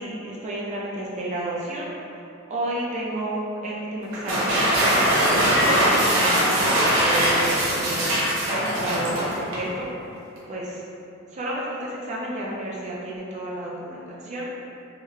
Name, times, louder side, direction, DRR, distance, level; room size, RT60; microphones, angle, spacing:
voice 1, 0.0-1.9 2.5-5.1 5.6-8.0 8.7-9.9 10.5-10.8 11.3-14.5, right 1 dB, 35° right, -5 dB, 0.4 m, -31 dB
sound 1, 4.1-9.7, equal, 65° right, 0.8 m, -21 dB
3.5 x 2.1 x 3.1 m, 2.8 s
head